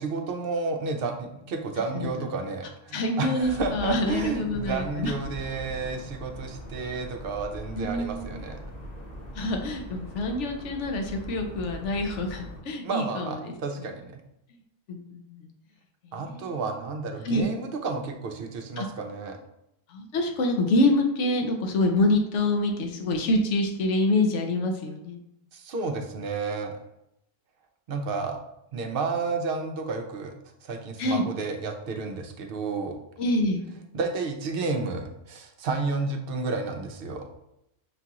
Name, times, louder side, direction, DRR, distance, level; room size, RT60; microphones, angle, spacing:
voice 1, 0.0-8.6 12.8-14.2 16.1-19.4 25.5-26.7 27.9-28.4 28.7-30.3 30.6-33.0 33.9-37.3, right 4 dB, 60° right, 4 dB, 0.6 m, -31 dB
voice 2, 2.9-5.1 7.8-8.4 9.3-13.9 14.9-15.5 16.0-16.6 17.2-17.5 18.8-18.9 19.9-25.2 31.0-31.2 33.2-33.6, left 1 dB, 75° left, 3 dB, 1.0 m, -26 dB
sound 1, 3.4-12.6, equal, 35° left, 1.1 m, -41 dB
5.9 x 2.4 x 2.8 m, 0.81 s
omnidirectional pair, 1.3 m